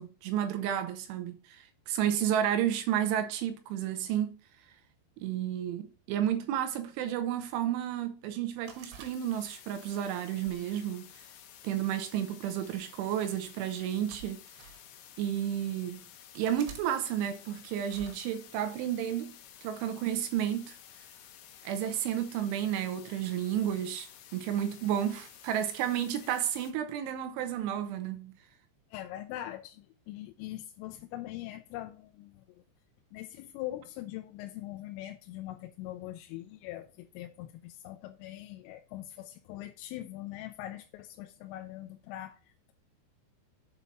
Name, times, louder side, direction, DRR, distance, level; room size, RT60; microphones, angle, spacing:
voice 1, 0.0-4.4 5.2-11.1 11.6-14.4 15.2-16.1 16.4-19.4 19.6-20.8 21.6-28.3, right 10 dB, 85° right, 3.0 m, -32 dB
sound 1, 8.6-26.7, left 10 dB, 75° left, 3.2 m, -53 dB
sound 2, 8.7-9.7 10.4-11.5 12.5-12.8 13.8-14.8 15.5-15.6 16.4-16.9 17.8-18.2, right 7 dB, 70° right, 3.1 m, -50 dB
voice 2, 28.9-32.6 33.1-42.7, left 14 dB, 90° left, 3.2 m, -42 dB
8.4 x 4.2 x 5.5 m
omnidirectional pair, 5.8 m